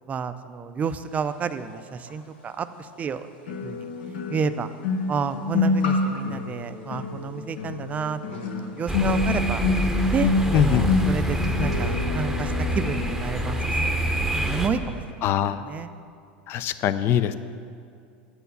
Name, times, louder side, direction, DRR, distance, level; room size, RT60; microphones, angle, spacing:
voice 1, 0.1-2.7 3.0-3.9 4.3-4.7 5.1-9.6 10.1-13.7 14.4-15.9, right 6 dB, 25° right, 12 dB, 0.4 m, -30 dB
sound 1, 2.1-2.2 3.5-14.6 14.8-15.1, left 3 dB, 75° left, 0.9 m, -27 dB
sound 2, 8.9-14.7, right 1 dB, 5° right, 0.8 m, -26 dB
voice 2, 10.5-10.8 15.2-15.6 16.5-17.4, left 9 dB, 45° left, 13 dB, 0.4 m, -22 dB
8.0 x 4.5 x 6.9 m, 2.4 s
hypercardioid pair, 105°, 6 cm